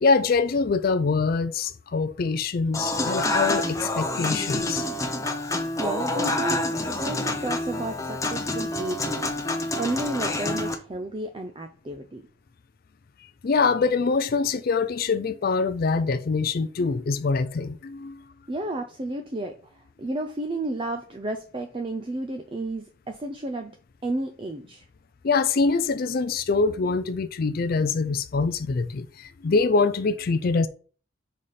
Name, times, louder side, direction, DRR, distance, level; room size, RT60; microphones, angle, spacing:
voice 1, 0.0-4.8 13.4-18.2 25.2-30.7, left 4 dB, 45° left, 0.4 m, -24 dB
Human voice / Acoustic guitar / Piano, 2.7-10.7, left 2 dB, 15° left, 0.7 m, -27 dB
voice 2, 5.8-12.2 18.5-23.7 24.0-24.9, right 2 dB, 25° right, 0.4 m, -32 dB
5.5 x 4.1 x 4.9 m
head